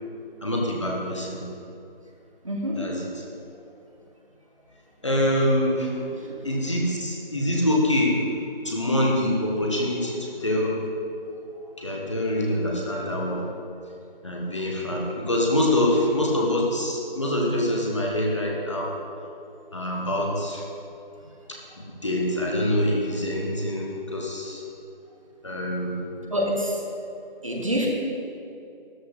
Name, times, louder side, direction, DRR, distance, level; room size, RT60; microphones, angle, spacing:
voice 1, 0.4-1.4 2.8-3.2 5.0-6.1 6.4-8.3 8.6-10.7 11.8-13.5 14.2-18.9 19.7-20.6 21.5-24.6 25.4-26.0, left 1 dB, 30° left, -2 dB, 1.4 m, -25 dB
voice 2, 2.4-2.8 6.2-6.5 26.3-26.8 27.4-27.9, equal, 35° right, -1 dB, 1.4 m, -27 dB
13.0 x 12.0 x 3.3 m, 2.6 s
figure-of-eight pair, 170°, 30 cm